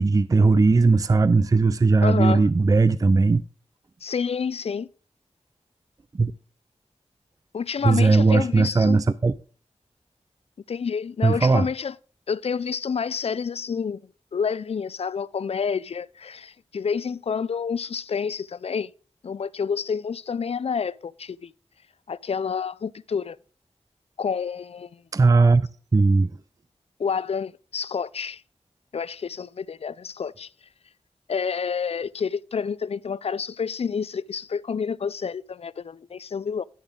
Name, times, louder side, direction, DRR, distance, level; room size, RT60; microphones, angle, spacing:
voice 1, 0.0-3.4 6.1-6.3 7.8-9.3 11.2-11.7 25.1-26.3, right 3 dB, 30° right, 0.4 m, -18 dB
voice 2, 2.0-2.5 4.0-4.9 7.5-9.0 10.7-11.9 12.3-14.0 14.3-18.9 19.2-21.5 22.1-23.4 24.2-25.0 27.0-28.4 28.9-30.5 31.3-36.6, left 6 dB, 60° left, 0.4 m, -29 dB
11.0 x 7.0 x 3.8 m
wide cardioid pair, 85°, 11 cm